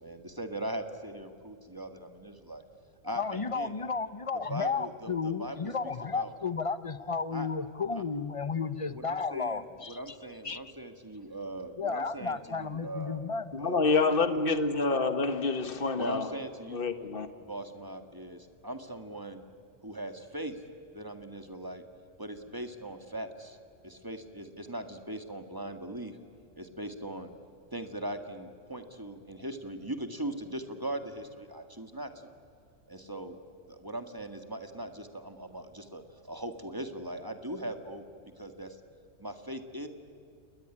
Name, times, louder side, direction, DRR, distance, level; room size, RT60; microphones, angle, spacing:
voice 1, 0.0-2.6 3.0-3.7 4.3-5.7 6.1-6.3 7.3-7.5 7.9-8.0 8.9-13.2 13.6-14.0 16.0-17.1 17.4-19.4 19.8-20.6 20.9-21.8 22.2-23.6 23.8-26.2 26.5-27.3 27.7-32.3 32.9-33.4 33.7-38.0 38.4-38.8 39.2-39.9, right 1 dB, 15° right, 1.8 m, -40 dB
voice 2, 3.2-10.2 10.4-10.6 11.8-13.7, left 5 dB, 30° left, 0.8 m, -33 dB
voice 3, 13.5-16.3 16.7-17.3, left 3 dB, 45° left, 1.7 m, -27 dB
28.0 x 21.0 x 10.0 m
omnidirectional pair, 1.3 m